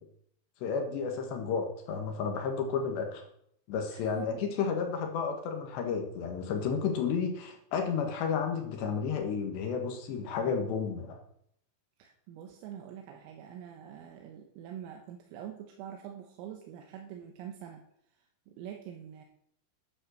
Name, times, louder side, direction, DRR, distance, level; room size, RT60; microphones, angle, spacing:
voice 1, 0.6-3.2 3.7-11.2, left 6 dB, 65° left, 4 dB, 3.5 m, -32 dB
voice 2, 3.9-4.5 12.0-17.8 18.2-19.3, right 9 dB, 85° right, 3 dB, 3.8 m, -45 dB
11.0 x 9.9 x 6.5 m, 0.70 s
omnidirectional pair, 5.9 m